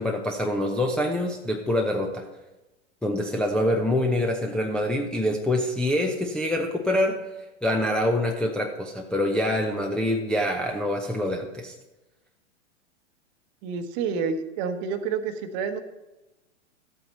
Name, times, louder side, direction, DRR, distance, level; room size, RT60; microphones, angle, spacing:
voice 1, 0.0-2.3 3.0-7.2 7.6-11.7, left 1 dB, ahead, 0 dB, 0.6 m, -25 dB
voice 2, 13.6-15.8, right 6 dB, 40° right, 9 dB, 1.0 m, -29 dB
13.5 x 8.1 x 4.2 m, 1.0 s
figure-of-eight pair, 100°, 37 cm